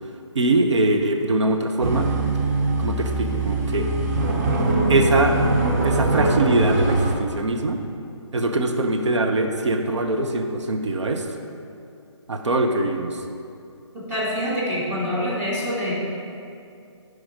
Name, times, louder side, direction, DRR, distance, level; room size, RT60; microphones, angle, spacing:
voice 1, 0.3-2.1 2.8-3.9 4.9-5.4 5.8-7.8 8.3-11.3 12.3-13.2, right 2 dB, 70° right, 4 dB, 0.9 m, -22 dB
sound 1, 1.8-7.1, right 2 dB, 30° right, 1.0 m, -22 dB
voice 2, 13.9-15.9, equal, 15° right, -8 dB, 2.3 m, -26 dB
10.0 x 5.1 x 5.0 m, 2.5 s
figure-of-eight pair, 145°, 16 cm